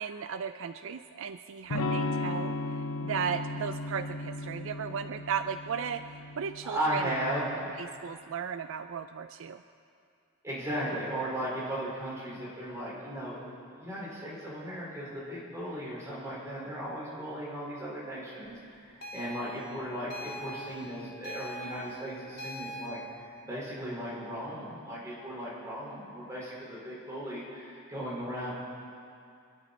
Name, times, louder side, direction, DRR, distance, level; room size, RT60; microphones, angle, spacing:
voice 1, 0.0-7.1 7.5-9.6, right 6 dB, 65° right, 10 dB, 0.4 m, -36 dB
Electric guitar / Strum, 1.7-7.4, left 2 dB, 85° left, 0.8 m, -35 dB
voice 2, 6.6-7.5 10.4-13.5 13.8-28.5, equal, 15° right, -6 dB, 4.8 m, -36 dB
sound 1, 19.0-22.9, equal, 50° left, 1.9 m, -42 dB
26.5 x 11.0 x 4.3 m, 2.5 s
head